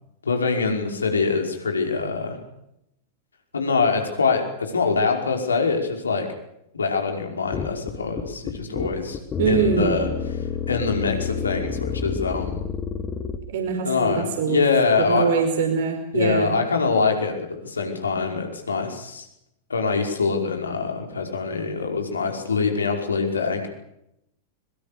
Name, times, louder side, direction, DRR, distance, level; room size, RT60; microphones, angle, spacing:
voice 1, 0.2-2.4 3.5-6.3 6.7-9.2 9.5-10.1 10.7-12.7 13.8-15.4 16.1-19.3 19.7-23.7, left 4 dB, 75° left, 4 dB, 5.2 m, -24 dB
sound 1, 7.5-13.4, left 7 dB, 25° left, 2.5 m, -29 dB
voice 2, 9.4-10.0 13.5-14.6 15.0-16.5, right 6 dB, 55° right, 4 dB, 5.1 m, -23 dB
24.5 x 23.5 x 6.8 m, 0.80 s
figure-of-eight pair, 90°, 0 cm